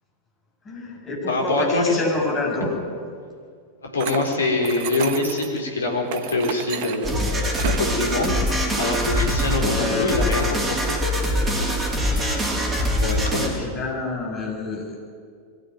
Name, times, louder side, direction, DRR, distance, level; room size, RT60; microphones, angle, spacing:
voice 1, 0.7-2.7 13.5-15.0, left 3 dB, 25° left, -1 dB, 6.9 m, -28 dB
voice 2, 1.3-2.0 3.8-8.3 8.8-11.0 13.0-13.5, left 2 dB, 70° left, 1 dB, 4.4 m, -24 dB
sound 1, 4.0-5.6 6.1-7.9, right 9 dB, 45° right, 1.3 m, -33 dB
sound 2, 7.0-13.5, equal, 10° right, 4.9 m, -23 dB
23.0 x 15.0 x 9.7 m, 2.1 s
figure-of-eight pair, 90°, 0 cm